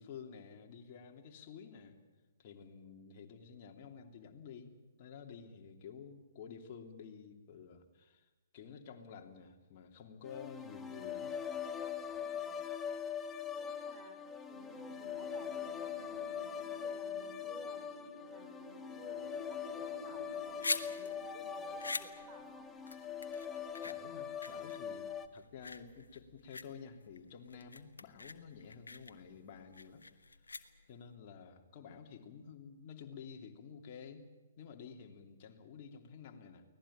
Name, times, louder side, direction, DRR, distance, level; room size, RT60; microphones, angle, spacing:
voice 1, 0.0-2.0 2.4-8.3 8.5-11.4 23.8-30.0 30.9-34.3 34.6-36.6, left 6 dB, 40° left, 3 dB, 3.1 m, -51 dB
sound 1, 10.2-25.3, left 7 dB, 15° left, 1.4 m, -42 dB
voice 2, 12.1-12.8 13.6-17.9 18.2-22.7 24.6-24.8, right 3 dB, 20° right, 4 dB, 4.4 m, -58 dB
Wind, 14.5-23.2, equal, 85° right, 5.6 m, -55 dB
sound 2, 20.2-31.1, left 3 dB, 80° left, 1.5 m, -44 dB
24.5 x 18.0 x 8.9 m, 1.2 s
figure-of-eight pair, 125°, 0 cm